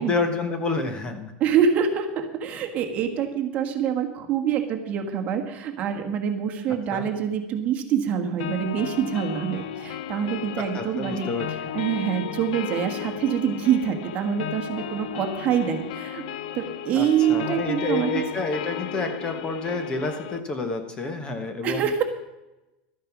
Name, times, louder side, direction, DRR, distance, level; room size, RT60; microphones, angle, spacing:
voice 1, 0.0-1.3 6.9-7.1 10.7-11.5 16.9-21.9, left 3 dB, 20° left, 7 dB, 1.2 m, -29 dB
voice 2, 1.4-11.3 11.7-16.2 16.5-18.1 21.6-22.0, right 8 dB, 35° right, 4 dB, 1.5 m, -25 dB
sound 1, 8.4-20.4, left 9 dB, 85° left, 0.7 m, -34 dB
12.5 x 9.2 x 6.1 m, 1.0 s
supercardioid pair, 160°, 4 cm